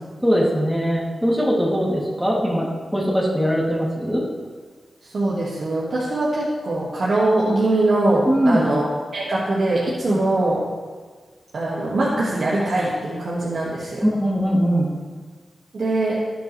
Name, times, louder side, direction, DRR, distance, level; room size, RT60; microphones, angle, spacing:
voice 1, 0.2-4.2 8.3-8.6 10.1-10.2 14.0-14.9, equal, 5° right, -5 dB, 2.9 m, -21 dB
voice 2, 5.0-10.6 11.5-14.0 15.7-16.2, right 2 dB, 70° right, -7 dB, 2.0 m, -22 dB
14.0 x 9.3 x 3.4 m, 1.5 s
cardioid pair, 60°, 0 cm